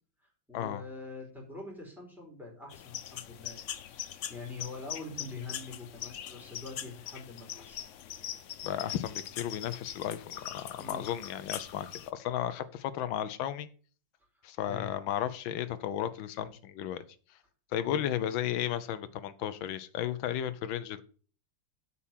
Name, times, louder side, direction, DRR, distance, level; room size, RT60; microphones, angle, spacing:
voice 1, 0.2-3.7 4.0-7.8 8.9-9.1 10.8-11.1 14.6-14.9 17.8-18.1, left 4 dB, ahead, -2 dB, 4.5 m, -44 dB
sound 1, 2.7-12.1, left 10 dB, 65° left, 0.7 m, -42 dB
voice 2, 8.6-13.7 14.4-17.0 17.7-21.0, left 11 dB, 90° left, 12 dB, 1.5 m, -34 dB
8.4 x 5.9 x 7.4 m, 0.41 s
omnidirectional pair, 2.1 m